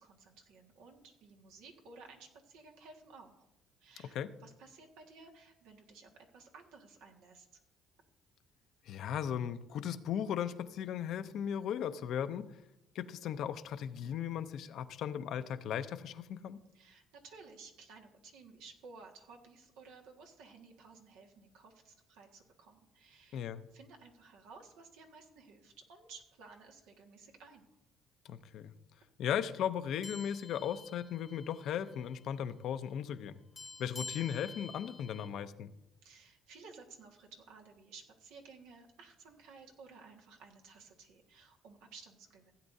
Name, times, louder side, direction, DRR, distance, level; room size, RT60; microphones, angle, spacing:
voice 1, 0.0-3.5 3.8-7.6 16.7-27.7 36.0-42.5, right 4 dB, 90° right, 1 dB, 1.7 m, -56 dB
voice 2, 8.9-12.5 12.9-16.6 23.3-23.6 28.2-28.7 29.2-33.3 33.8-35.7, left 9 dB, 70° left, 12 dB, 0.6 m, -37 dB
sound 1, 30.0-31.7 32.0-32.2 33.6-35.3, left 3 dB, 30° left, 0.9 m, -48 dB
16.0 x 8.8 x 2.7 m, 0.88 s
cardioid pair, 90°, 0 cm